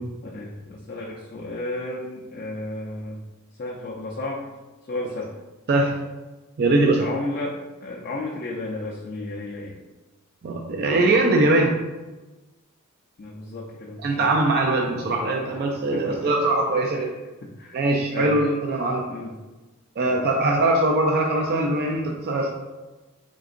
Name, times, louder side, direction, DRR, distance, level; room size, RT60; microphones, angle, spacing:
voice 1, 0.2-3.2 3.6-4.4 4.9-5.3 6.8-7.5 7.8-9.7 13.2-14.3 15.9-17.1 17.4-17.8 18.1-18.3 19.1-19.3 20.1-20.6, left 2 dB, 40° left, -2 dB, 0.4 m, -33 dB
voice 2, 6.6-7.1 10.4-11.8 14.0-17.1 17.7-19.1 20.0-22.5, right 2 dB, 45° right, 1 dB, 0.3 m, -21 dB
3.8 x 3.4 x 2.5 m, 1.2 s
head